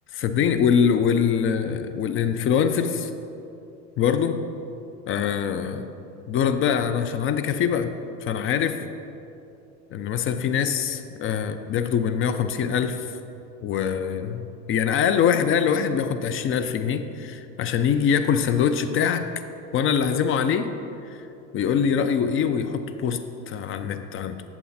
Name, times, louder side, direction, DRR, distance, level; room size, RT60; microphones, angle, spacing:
voice 1, 0.2-3.1 4.0-4.4 5.1-5.8 6.3-7.9 8.2-8.8 9.9-13.0 13.6-14.4 14.7-19.3 19.7-20.7 21.5-24.4, left 7 dB, 35° left, 9 dB, 0.6 m, -23 dB
8.4 x 7.0 x 4.1 m, 2.8 s
hypercardioid pair, 100°, 36 cm